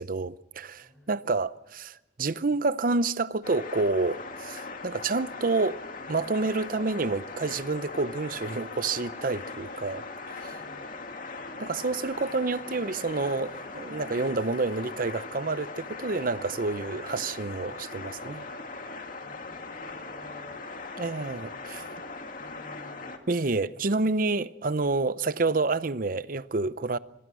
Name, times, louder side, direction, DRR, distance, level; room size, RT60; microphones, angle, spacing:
voice 1, 0.0-5.8 6.1-10.6 11.6-18.5 21.0-21.9 23.3-27.0, right 3 dB, 50° right, 0.7 m, -29 dB
voice 2, 0.8-1.1 10.5-11.0 19.1-20.6 21.7-23.2, left 1 dB, ahead, 7.6 m, -53 dB
sound 1, 3.4-23.2, left 3 dB, 50° left, 2.3 m, -40 dB
26.5 x 22.5 x 6.3 m
head